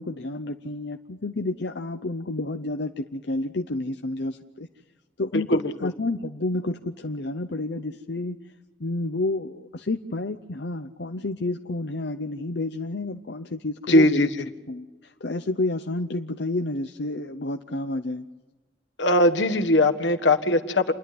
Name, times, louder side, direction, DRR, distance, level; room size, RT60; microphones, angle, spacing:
voice 1, 0.0-4.7 5.2-8.4 8.8-14.3 14.7-18.2, left 2 dB, 70° left, 6 dB, 0.8 m, -30 dB
voice 2, 5.3-5.9 13.9-14.3 19.0-20.9, left 1 dB, 85° left, 7 dB, 1.6 m, -20 dB
28.5 x 11.0 x 9.6 m, 1.2 s
head